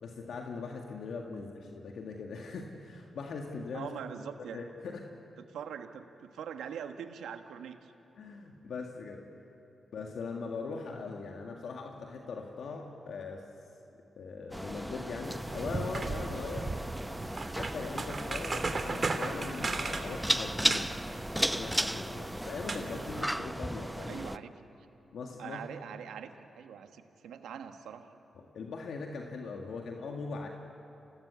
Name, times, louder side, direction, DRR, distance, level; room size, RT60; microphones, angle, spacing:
voice 1, 0.0-3.9 4.5-5.1 8.2-9.3 9.9-13.5 14.2-16.7 17.5-20.9 21.3-24.2 25.1-25.6 28.4-30.5, left 4 dB, 75° left, 1 dB, 1.9 m, -40 dB
voice 2, 3.7-4.6 5.5-7.9 24.1-24.6 25.4-28.1, right 8 dB, 85° right, 7 dB, 1.4 m, -43 dB
sound 1, 14.5-24.4, right 1 dB, 5° right, 0.7 m, -35 dB
sound 2, 15.2-23.2, right 3 dB, 45° right, 2.8 m, -37 dB
28.5 x 18.5 x 8.3 m, 3.0 s
supercardioid pair, 45°, 0 cm